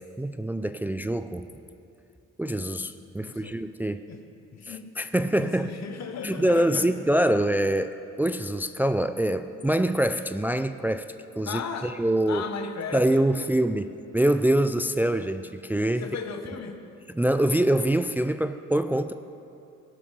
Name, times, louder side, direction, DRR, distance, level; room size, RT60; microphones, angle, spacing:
voice 1, 0.2-1.5 2.4-4.0 4.7-5.7 6.2-11.1 11.4-12.4 12.9-16.1 17.1-19.1, right 1 dB, 5° right, 9 dB, 0.4 m, -25 dB
voice 2, 3.2-3.6 4.1-4.2 4.5-4.9 5.4-6.9 11.4-12.0 12.3-13.5 16.0-16.8, left 6 dB, 60° left, 6 dB, 1.4 m, -36 dB
19.5 x 11.5 x 5.1 m, 2.7 s
cardioid pair, 90°, 30 cm